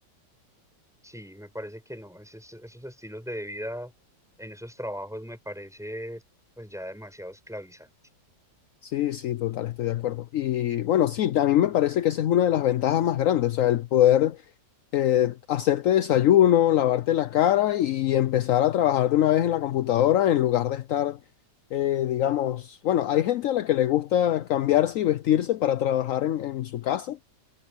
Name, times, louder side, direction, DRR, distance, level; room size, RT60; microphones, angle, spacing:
voice 1, 1.0-3.9 4.4-6.2 6.6-7.9, equal, ahead, 7.7 m, -38 dB
voice 2, 8.8-14.4 14.9-21.2 21.7-27.2, left 12 dB, 65° left, 0.8 m, -23 dB
omnidirectional pair, 2.0 m